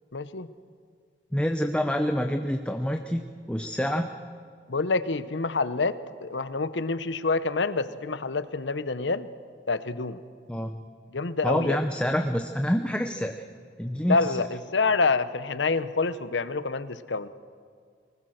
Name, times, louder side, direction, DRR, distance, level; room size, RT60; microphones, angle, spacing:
voice 1, 0.1-0.5 4.7-9.3 9.7-10.2 11.1-11.8 14.0-17.3, left 3 dB, 90° left, 14 dB, 0.9 m, -27 dB
voice 2, 1.3-4.1 10.5-10.8 11.4-13.4 13.8-14.4, equal, 5° left, 5 dB, 0.7 m, -27 dB
23.5 x 20.0 x 6.5 m, 2.1 s
head